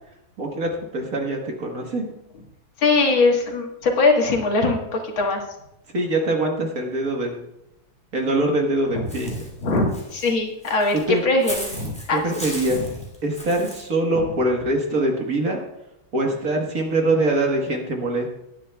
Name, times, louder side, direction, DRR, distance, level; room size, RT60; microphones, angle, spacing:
voice 1, 0.4-2.1 5.9-7.5 8.1-9.3 11.1-11.2 12.1-12.8 13.2-15.6 16.1-18.3, right 1 dB, 45° right, 1 dB, 1.7 m, -23 dB
voice 2, 2.8-5.4 8.9-10.9 11.2-12.2 12.7-12.9, left 3 dB, 75° left, 1 dB, 2.3 m, -21 dB
Walk footsteps / Bird, 9.1-13.8, equal, 5° left, 2.6 m, -37 dB
18.0 x 10.0 x 2.3 m, 0.88 s
omnidirectional pair, 2.2 m